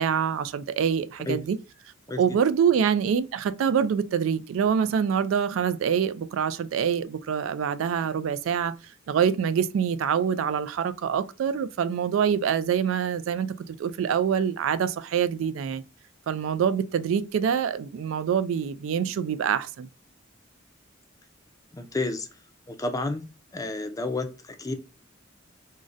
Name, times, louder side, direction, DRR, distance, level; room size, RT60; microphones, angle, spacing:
voice 1, 0.0-1.6 2.2-15.8 16.3-19.9, right 7 dB, 85° right, 0.3 m, -25 dB
voice 2, 21.7-22.3 22.7-23.2 23.5-24.7, left 2 dB, 20° left, 0.4 m, -30 dB
3.8 x 2.1 x 2.4 m
head